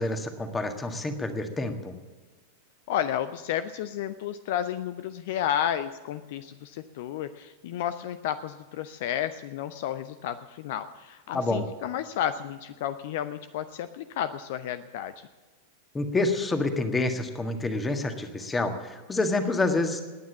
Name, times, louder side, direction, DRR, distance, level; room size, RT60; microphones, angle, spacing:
voice 1, 0.0-1.9 11.3-11.6 15.9-20.0, left 2 dB, 15° left, 7 dB, 1.7 m, -28 dB
voice 2, 2.9-15.3, left 10 dB, 50° left, 13 dB, 0.6 m, -32 dB
19.5 x 9.5 x 7.3 m, 1.3 s
figure-of-eight pair, 90°, 0 cm